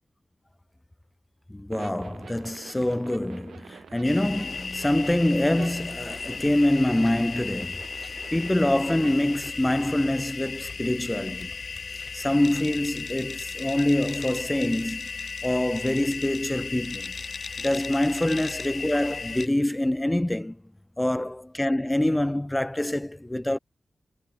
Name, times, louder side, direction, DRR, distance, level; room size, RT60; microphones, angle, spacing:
voice 1, 1.5-11.5 11.9-17.1 17.6-20.6 21.0-23.6, left 1 dB, 10° left, 0.5 m, -25 dB
sound 1, 1.7-9.5, right 7 dB, 85° right, 2.5 m, -46 dB
sound 2, 4.0-19.5, left 5 dB, 55° left, 1.1 m, -36 dB
wide cardioid pair, 80°, 0 cm